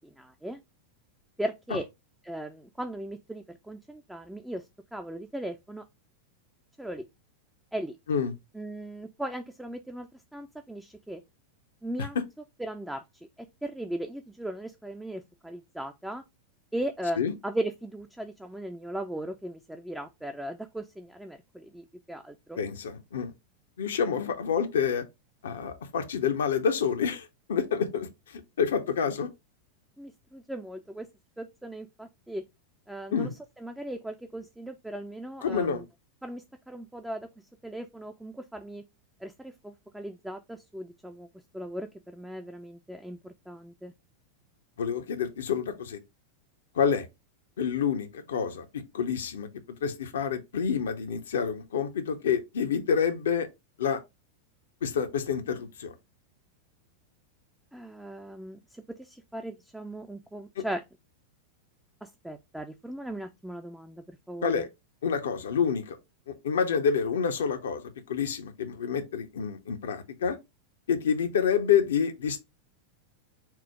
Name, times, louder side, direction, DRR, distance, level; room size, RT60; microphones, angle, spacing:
voice 1, 0.2-0.6 1.4-1.9 2.2-4.6 4.9-5.8 6.8-7.1 7.7-8.0 8.5-11.2 11.8-12.2 12.6-13.0 13.4-16.2 16.7-22.6 30.0-31.1 31.4-32.4 32.9-33.3 33.6-35.8 36.2-37.3 37.6-38.8 39.2-41.3 41.5-43.9 57.7-60.8 62.0-64.7, right 1 dB, 5° right, 0.3 m, -38 dB
voice 2, 22.6-23.3 23.8-25.0 25.4-29.3 33.1-33.3 35.4-35.9 44.8-46.0 46.7-47.1 47.6-49.5 49.8-53.5 53.8-54.0 54.8-55.9 60.6-60.7 64.4-64.7 65.0-66.0 66.3-70.4 70.9-72.4, left 7 dB, 65° left, 0.5 m, -28 dB
4.4 x 2.0 x 4.5 m
figure-of-eight pair, 90°, 0 cm